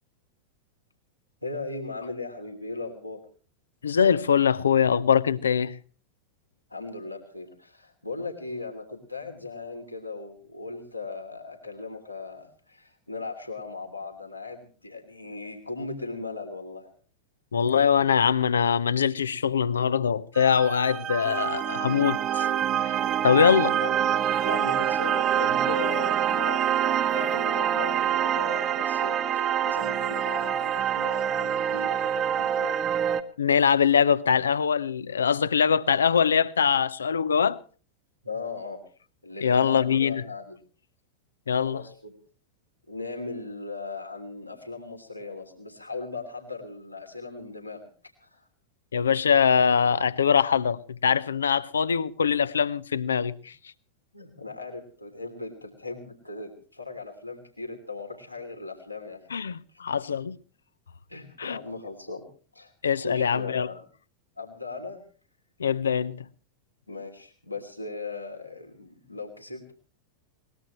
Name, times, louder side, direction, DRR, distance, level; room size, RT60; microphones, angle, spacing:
voice 1, 1.4-3.2 6.7-16.9 23.8-23.9 24.4-32.8 38.2-38.8 39.2-40.6 41.6-42.1 42.9-47.8 48.2-48.5 54.1-59.2 59.7-59.8 61.1-62.2 62.5-62.7 63.0-63.8 64.4-65.0 66.9-69.7, left 3 dB, 85° left, 3.1 m, -38 dB
voice 2, 3.8-5.8 17.5-22.5 22.8-23.0 23.2-23.8 33.4-37.6 39.4-40.2 41.5-41.8 48.9-53.5 59.3-60.4 61.4-61.6 62.8-63.7 65.6-66.2, left 7 dB, 70° left, 0.8 m, -23 dB
sound 1, 20.3-33.2, right 9 dB, 35° right, 1.4 m, -26 dB
22.5 x 19.5 x 3.1 m
figure-of-eight pair, 90°, 0 cm